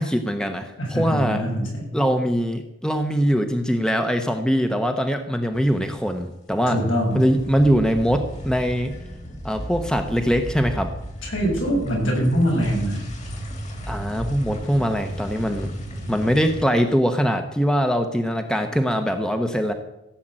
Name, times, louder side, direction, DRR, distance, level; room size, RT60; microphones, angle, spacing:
voice 1, 0.0-1.4 1.9-6.8 7.1-8.9 9.4-10.9 13.9-15.7 16.1-19.7, equal, 5° left, 6 dB, 0.9 m, -22 dB
voice 2, 0.8-1.9 6.7-7.2 11.2-13.1, equal, 80° left, -2 dB, 7.6 m, -23 dB
sound 1, 5.5-6.3 6.6-16.6, equal, 35° left, 2.4 m, -35 dB
16.0 x 7.5 x 8.9 m, 0.89 s
head